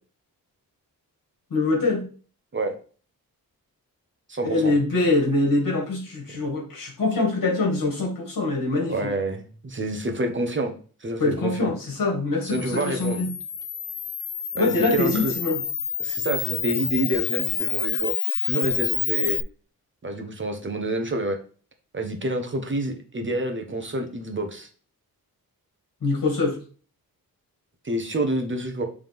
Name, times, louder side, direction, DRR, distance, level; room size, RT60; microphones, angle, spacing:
voice 1, 1.5-2.0 4.4-9.0 11.2-13.3 14.6-15.6 26.0-26.6, left 3 dB, 65° left, 0 dB, 2.3 m, -24 dB
voice 2, 4.3-4.7 8.9-10.7 11.0-11.7 12.4-13.2 14.5-15.3 16.0-18.1 18.4-19.4 20.0-21.4 21.9-24.7 27.8-28.8, right 1 dB, 30° right, 4 dB, 1.0 m, -28 dB
Camera, 12.4-19.4, left 8 dB, 35° left, 0.4 m, -28 dB
7.6 x 3.6 x 3.6 m, 0.39 s
wide cardioid pair, 120°, 37 cm